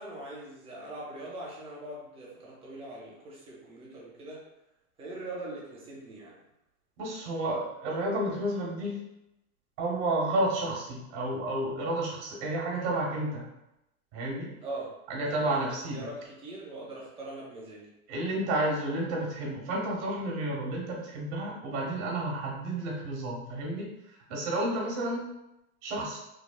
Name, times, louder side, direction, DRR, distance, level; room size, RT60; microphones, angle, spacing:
voice 1, 0.0-4.4 5.0-6.3 14.6-14.9 15.2-15.7 15.9-17.9, right 2 dB, 15° right, -4 dB, 0.7 m, -42 dB
voice 2, 7.0-9.0 9.8-13.5 14.1-14.5 15.1-16.1 18.1-25.3 25.8-26.2, right 1 dB, 50° right, -2 dB, 1.1 m, -31 dB
3.5 x 2.2 x 2.3 m, 0.89 s
hypercardioid pair, 130°, 43 cm